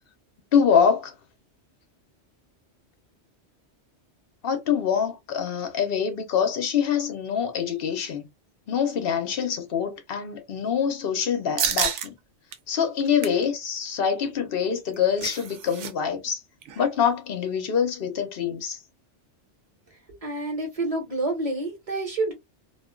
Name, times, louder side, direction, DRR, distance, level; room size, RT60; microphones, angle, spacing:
voice 1, 0.5-1.1 4.4-8.3 8.7-12.1 12.7-16.4 16.8-18.8, left 7 dB, 60° left, 0.9 m, -25 dB
sound 1, 11.6-12.1 12.5-12.6 13.0-13.4 14.7-15.9 16.2-16.3 16.6-16.9, right 8 dB, 85° right, 0.9 m, -29 dB
voice 2, 20.2-22.3, right 2 dB, 35° right, 1.0 m, -28 dB
2.4 x 2.3 x 2.3 m
omnidirectional pair, 1.2 m